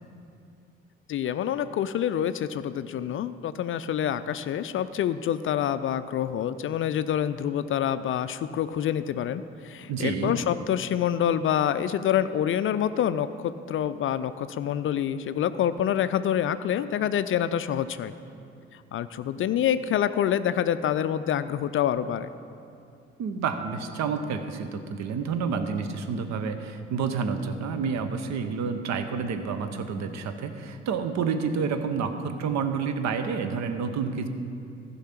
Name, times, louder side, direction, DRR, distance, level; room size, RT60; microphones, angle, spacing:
voice 1, 1.1-18.1 18.9-22.3, left 10 dB, 40° left, 13 dB, 0.4 m, -27 dB
voice 2, 9.9-10.4 23.2-34.3, right 5 dB, 55° right, 9 dB, 0.9 m, -29 dB
14.5 x 5.6 x 5.9 m, 2.5 s
figure-of-eight pair, 45°, 33 cm